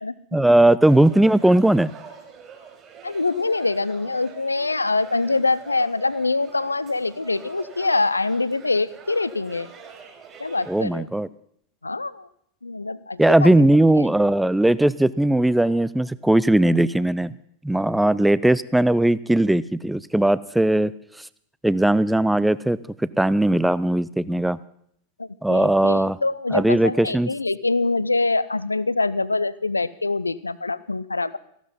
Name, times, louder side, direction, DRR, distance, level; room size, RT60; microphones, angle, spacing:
voice 1, 0.3-1.9 10.7-11.3 13.2-17.3 17.6-20.9 21.6-22.8 23.2-24.6 25.4-26.2 26.5-27.3, right 1 dB, 5° right, 18 dB, 0.5 m, -18 dB
sound 1, 0.8-10.8, right 6 dB, 25° right, 3.7 m, -44 dB
voice 2, 3.0-9.7 10.4-11.1 11.8-12.3 12.6-13.5 25.2-31.4, left 3 dB, 80° left, 18 dB, 0.5 m, -24 dB
15.0 x 12.5 x 5.5 m, 0.71 s
figure-of-eight pair, 90°, 0 cm